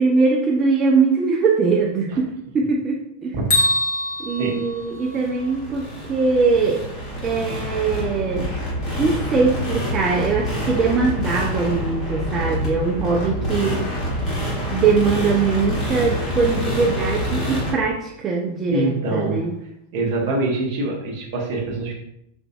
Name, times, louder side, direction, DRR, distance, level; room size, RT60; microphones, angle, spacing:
voice 1, 0.0-3.4 4.2-6.8 7.2-8.5 9.0-13.8 14.7-19.5, right 4 dB, 25° right, 0 dB, 0.4 m, -21 dB
Bell, 3.5-5.5, left 1 dB, 55° left, 1.0 m, -24 dB
sound 1, 4.4-17.7, equal, 30° left, 1.5 m, -27 dB
voice 2, 18.7-19.4 19.9-21.9, right 2 dB, 50° right, -1 dB, 0.8 m, -24 dB
4.2 x 2.5 x 2.3 m, 0.77 s
figure-of-eight pair, 90°, 0 cm